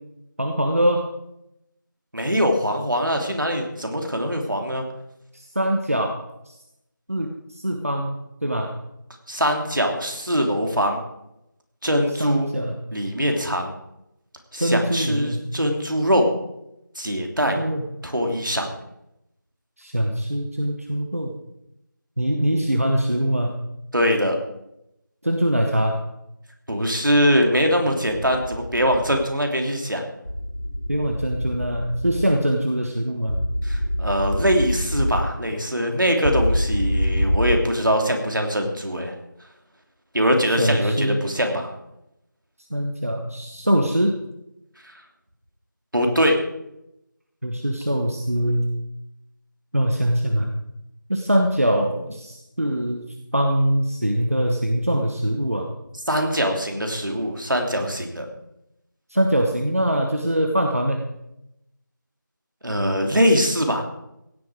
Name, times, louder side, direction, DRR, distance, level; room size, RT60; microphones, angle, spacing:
voice 1, 0.4-1.1 5.3-6.6 7.1-8.7 12.2-12.8 14.5-15.5 17.6-17.8 19.8-21.3 22.2-23.6 25.2-26.0 30.9-33.4 40.6-41.3 42.7-44.2 47.4-48.7 49.7-50.5 51.1-53.1 53.3-55.6 59.1-61.1, equal, 45° right, 3 dB, 1.3 m, -23 dB
voice 2, 2.1-4.9 9.3-11.0 11.8-12.5 12.9-13.7 14.5-16.3 16.9-17.6 18.0-18.7 23.9-24.4 26.7-30.0 33.6-39.1 40.1-41.7 44.8-44.9 45.9-46.4 56.1-58.3 62.6-63.8, equal, 70° right, 3 dB, 3.1 m, -22 dB
sound 1, 28.1-29.2 30.3-32.3 33.3-35.3 36.2-37.5, equal, 85° left, 3.0 m, -25 dB
16.5 x 11.0 x 4.8 m, 0.86 s
figure-of-eight pair, 180°, 11 cm